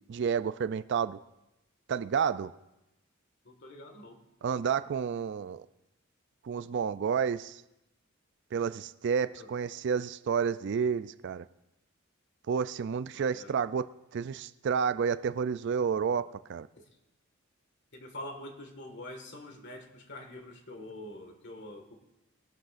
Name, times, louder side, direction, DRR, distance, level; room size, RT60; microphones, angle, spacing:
voice 1, 0.1-1.2 1.9-2.5 4.4-5.7 6.4-7.6 8.5-11.5 12.5-16.7, right 6 dB, 55° right, 14 dB, 0.4 m, -30 dB
voice 2, 3.5-4.2 9.4-9.5 13.1-13.6 16.8-16.9 17.9-22.0, left 1 dB, 55° left, 5 dB, 1.7 m, -45 dB
21.5 x 12.0 x 2.5 m, 0.93 s
head